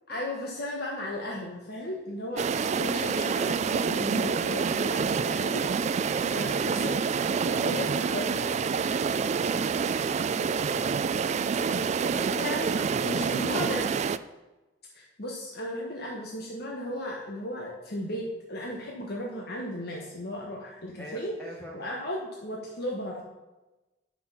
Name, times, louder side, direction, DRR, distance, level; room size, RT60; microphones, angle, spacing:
voice 1, 0.1-2.5 2.8-6.0 6.2-7.0 7.5-8.5 12.3-13.9 14.9-21.3 21.7-23.2, left 1 dB, 60° left, -2 dB, 1.3 m, -35 dB
sound 1, 2.4-14.2, right 5 dB, 40° right, 0.3 m, -27 dB
voice 2, 6.0-7.9 8.9-13.7 21.0-21.9, equal, 10° left, -2 dB, 1.0 m, -45 dB
9.5 x 6.0 x 5.7 m, 1.1 s
head